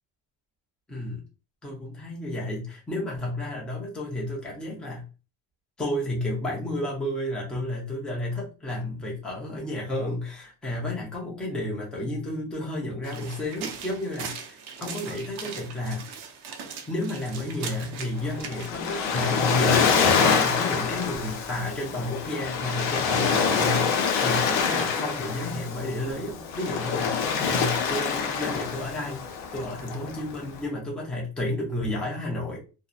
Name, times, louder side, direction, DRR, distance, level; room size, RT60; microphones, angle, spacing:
voice 1, 0.9-1.2 1.6-5.0 5.8-16.0 16.9-29.2 29.5-32.6, left 1 dB, ahead, -3 dB, 0.5 m, -31 dB
sound 1, 13.0-18.7, right 6 dB, 65° right, 0.6 m, -39 dB
Waves surf, 18.2-30.6, left 6 dB, 85° left, 0.6 m, -26 dB
2.7 x 2.0 x 2.3 m, 0.32 s
cardioid pair, 165°, 43 cm